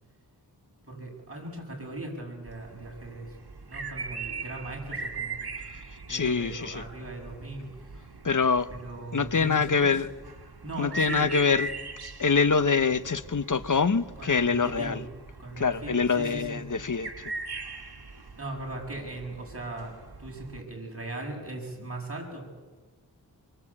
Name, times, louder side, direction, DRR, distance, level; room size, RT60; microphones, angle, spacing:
voice 1, 0.9-3.3 3.7-5.4 6.1-8.0 8.7-10.0 10.6-11.3 14.2-15.0 15.4-16.6 18.4-19.9 20.2-22.5, right 2 dB, 35° right, 7.7 m, -38 dB
sound 1, 2.5-20.6, right 3 dB, 70° right, 2.2 m, -41 dB
voice 2, 6.1-6.8 8.2-8.7 9.1-10.1 10.8-11.7 12.2-15.0 15.6-17.1, left 5 dB, 50° left, 1.1 m, -25 dB
24.0 x 24.0 x 8.8 m
wide cardioid pair, 70°, 40 cm